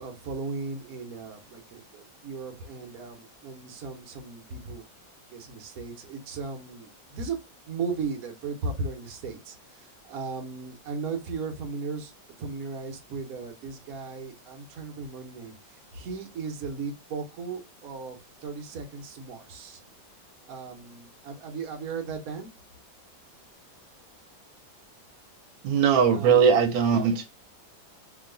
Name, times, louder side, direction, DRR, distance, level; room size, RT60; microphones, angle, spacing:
voice 1, 0.0-4.9 5.3-7.4 7.7-12.1 12.4-19.8 20.4-22.5 26.1-26.5, right 4 dB, 55° right, 1.2 m, -36 dB
voice 2, 25.6-27.3, right 7 dB, 85° right, 1.4 m, -20 dB
3.1 x 2.8 x 3.8 m
omnidirectional pair, 2.1 m